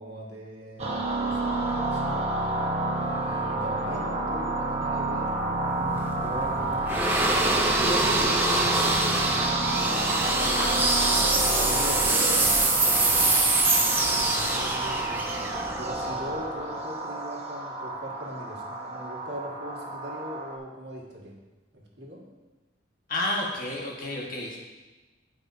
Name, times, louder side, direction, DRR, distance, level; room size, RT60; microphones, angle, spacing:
voice 1, 0.0-2.3 2.9-6.9 7.3-10.8 11.4-21.4 21.7-22.2, right 1 dB, 60° right, -2 dB, 1.7 m, -40 dB
sound 1, 0.8-20.6, right 2 dB, 35° right, 0.9 m, -29 dB
sound 2, 5.4-16.6, right 2 dB, 10° right, 0.6 m, -25 dB
voice 2, 10.5-11.2 23.1-24.6, left 1 dB, 45° left, -3 dB, 1.4 m, -31 dB
14.5 x 5.3 x 2.7 m, 1.2 s
head